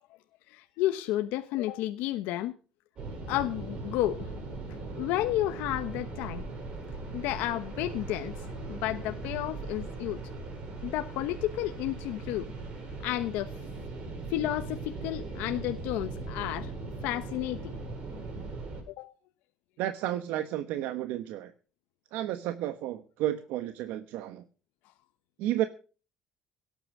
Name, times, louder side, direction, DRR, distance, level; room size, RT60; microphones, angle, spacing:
voice 1, 0.5-2.5 3.3-4.2 4.9-6.4 7.1-8.3 8.7-10.2 10.8-12.5 13.0-13.5 14.3-16.7 17.0-17.7 18.9-19.1, left 14 dB, 75° left, 7 dB, 1.1 m, -31 dB
sound 1, 3.0-18.8, right 3 dB, 35° right, 6.6 m, -39 dB
voice 2, 19.8-21.5 22.1-24.4 25.4-25.7, right 13 dB, 70° right, 10 dB, 1.2 m, -32 dB
17.5 x 8.9 x 6.1 m, 0.37 s
cardioid pair, 170°, 3 cm